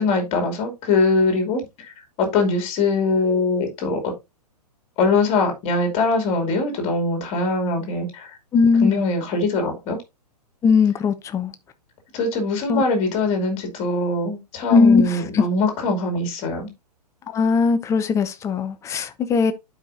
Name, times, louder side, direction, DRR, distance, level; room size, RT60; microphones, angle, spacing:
voice 1, 0.0-4.1 5.0-8.3 8.8-10.0 12.1-16.7, left 3 dB, 30° left, 2.7 m, -22 dB
voice 2, 8.5-9.0 10.6-11.5 12.7-12.8 14.7-15.4 17.3-19.5, left 5 dB, 15° left, 0.7 m, -19 dB
11.5 x 5.0 x 2.6 m
figure-of-eight pair, 115°, 21 cm